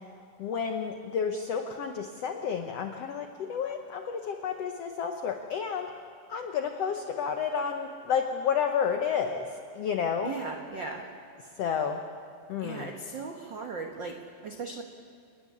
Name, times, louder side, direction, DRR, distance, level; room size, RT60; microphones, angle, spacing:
voice 1, 0.4-5.9 6.3-10.3 11.6-12.0 12.5-12.9, left 7 dB, 70° left, 5 dB, 1.5 m, -31 dB
voice 2, 10.2-11.1 12.6-14.8, right 4 dB, 75° right, 3 dB, 1.0 m, -38 dB
29.5 x 10.5 x 9.9 m, 2.4 s
omnidirectional pair, 4.1 m